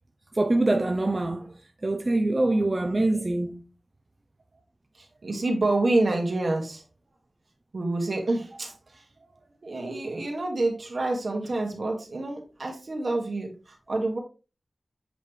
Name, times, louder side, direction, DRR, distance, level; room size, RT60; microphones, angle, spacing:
voice 1, 0.3-1.5 1.8-3.6, right 2 dB, 35° right, 0.6 m, -24 dB
voice 2, 5.0-6.8 7.7-9.0 9.6-14.2, right 2 dB, 60° right, 2.1 m, -28 dB
8.1 x 4.3 x 3.3 m
wide cardioid pair, 80°, 0 cm